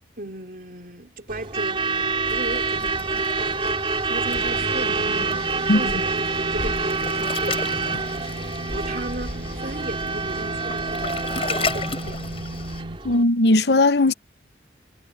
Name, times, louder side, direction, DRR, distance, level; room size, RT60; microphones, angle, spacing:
voice 1, 0.2-12.4, right 1 dB, 55° right, 3.7 m, -36 dB
Truck / Alarm, 1.3-13.2, right 4 dB, 30° right, 2.9 m, -27 dB
Waves surf, 2.3-12.8, left 3 dB, 35° left, 7.2 m, -34 dB
sound 1, 4.2-13.0, right 2 dB, 75° right, 2.1 m, -36 dB
voice 2, 13.0-14.1, left 2 dB, 70° left, 1.0 m, -17 dB
head